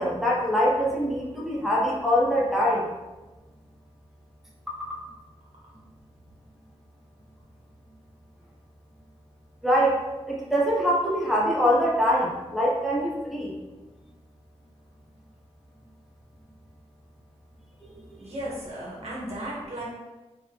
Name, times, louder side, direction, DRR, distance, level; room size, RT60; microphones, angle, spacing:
voice 1, 0.0-2.9 9.6-10.0 10.3-13.5 17.8-18.3, equal, ahead, -4 dB, 0.8 m, -24 dB
voice 2, 18.2-19.8, right 1 dB, 70° right, -6 dB, 1.5 m, -35 dB
3.7 x 3.3 x 2.9 m, 1.1 s
wide cardioid pair, 80°, 11 cm